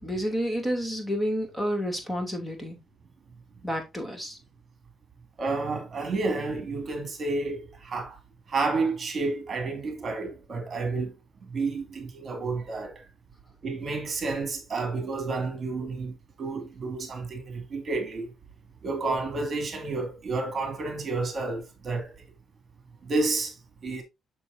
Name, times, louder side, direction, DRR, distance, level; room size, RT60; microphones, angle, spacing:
voice 1, 0.0-2.8 3.6-4.4, equal, 10° left, 2.9 m, -30 dB
voice 2, 5.4-8.2 8.5-11.1 11.4-13.0 13.6-18.3 18.8-22.1 23.0-23.5 23.8-24.0, right 3 dB, 45° right, 2.7 m, -30 dB
7.0 x 6.4 x 2.7 m
cardioid pair, 90°, 0 cm